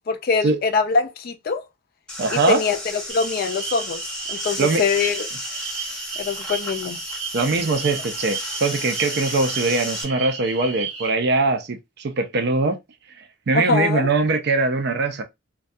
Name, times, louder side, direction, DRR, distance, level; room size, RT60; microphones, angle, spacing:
voice 1, 0.1-1.6 2.3-5.3 6.2-7.0 13.5-14.1, left 5 dB, 50° left, 0.4 m, -23 dB
sound 1, 2.1-10.0, left 1 dB, 5° left, 0.7 m, -33 dB
voice 2, 2.2-2.6 4.6-4.8 7.3-12.8 13.5-15.2, right 3 dB, 55° right, 0.5 m, -21 dB
sound 2, 3.1-11.1, right 6 dB, 75° right, 0.9 m, -33 dB
2.3 x 2.2 x 2.6 m
head